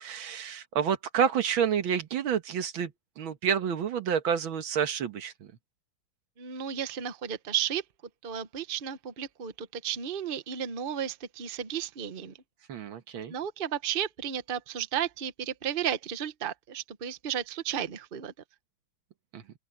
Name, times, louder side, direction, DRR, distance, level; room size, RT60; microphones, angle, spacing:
voice 1, 0.0-5.5 12.7-13.3 19.3-19.4, right 7 dB, 85° right, 2.1 m, -29 dB
voice 2, 6.4-7.8 8.2-12.3 13.3-18.3, right 9 dB, 35° right, 1.0 m, -33 dB
open air
omnidirectional pair, 2.2 m